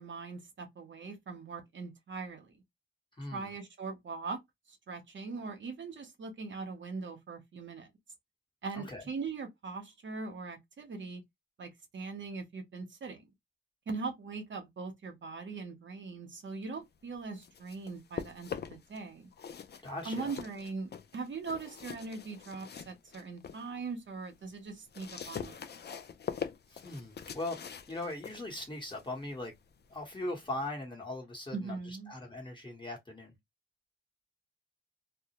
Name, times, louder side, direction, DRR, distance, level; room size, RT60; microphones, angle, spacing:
voice 1, 0.0-2.5 3.3-4.4 4.7-7.9 8.6-11.2 11.6-13.3 13.9-19.3 20.0-25.7 31.5-32.1, right 4 dB, 65° right, 0.7 m, -41 dB
voice 2, 3.2-3.5 8.7-9.0 19.8-20.3 26.7-27.6 27.9-29.5 29.9-33.3, left 2 dB, 25° left, 1.1 m, -40 dB
sound 1, 17.1-19.0 19.3-23.7 24.1-30.7, left 7 dB, 55° left, 0.4 m, -44 dB
2.2 x 2.1 x 2.7 m
cardioid pair, 65°, 21 cm